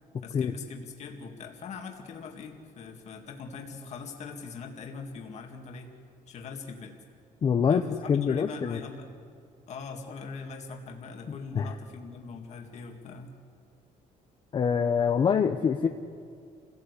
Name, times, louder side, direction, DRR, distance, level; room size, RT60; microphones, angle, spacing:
voice 1, 0.2-5.9 6.3-7.0 7.7-9.1 9.7-13.3, left 4 dB, 50° left, 2 dB, 2.1 m, -42 dB
voice 2, 7.4-8.8 11.3-11.7 14.5-15.9, left 6 dB, 35° left, 6 dB, 0.7 m, -25 dB
28.0 x 17.0 x 8.2 m, 2.3 s
cardioid pair, 170°, 15 cm